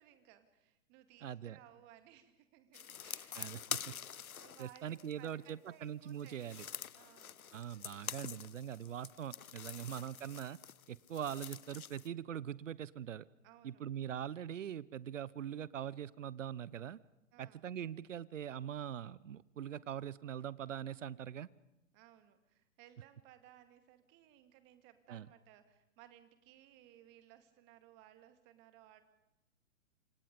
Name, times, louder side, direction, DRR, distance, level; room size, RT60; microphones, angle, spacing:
voice 1, 0.0-3.5 4.4-6.7 7.0-7.4 13.4-13.8 17.3-17.7 21.9-29.0, right 12 dB, 25° right, 9 dB, 2.1 m, -61 dB
voice 2, 1.2-1.6 3.3-3.9 4.6-6.7 7.5-10.6 10.9-13.3 13.6-17.0 17.4-21.5 25.1-25.3, right 9 dB, 60° right, 21 dB, 0.9 m, -42 dB
sound 1, 2.7-5.5 6.1-12.1, left 8 dB, 80° left, 0.8 m, -46 dB
28.5 x 25.5 x 5.3 m, 0.94 s
figure-of-eight pair, 130°, 42 cm